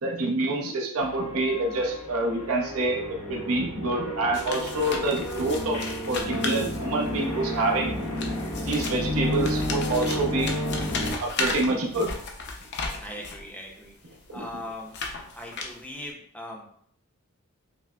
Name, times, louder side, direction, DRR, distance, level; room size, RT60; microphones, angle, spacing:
voice 1, 0.0-5.8 6.1-8.1 8.6-10.5 11.2-12.1 14.3-14.5, right 2 dB, 70° right, 0 dB, 0.7 m, -27 dB
sound 1, 1.0-11.1, left 1 dB, 80° left, 0.8 m, -31 dB
sound 2, 4.3-7.3 8.0-13.5 14.1-16.1, left 4 dB, 50° left, 0.5 m, -35 dB
voice 2, 13.0-13.9 14.3-14.9 15.4-16.7, left 1 dB, 5° left, 0 dB, 0.6 m, -39 dB
5.7 x 2.0 x 2.3 m, 0.63 s
head